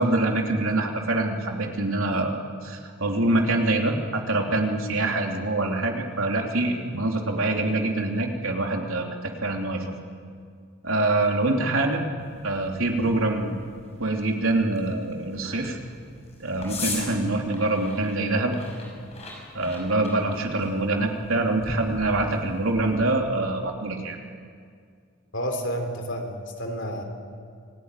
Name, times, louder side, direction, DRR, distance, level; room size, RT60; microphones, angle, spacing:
voice 1, 0.0-9.8 10.8-12.0 12.4-13.6 14.0-15.8 16.4-18.5 19.5-24.2, right 2 dB, 75° right, 2 dB, 3.2 m, -25 dB
sound 1, 12.2-23.2, left 3 dB, 30° left, 6.5 m, -40 dB
voice 2, 25.3-27.0, equal, 55° left, 4 dB, 3.7 m, -30 dB
27.0 x 18.5 x 9.9 m, 2.2 s
head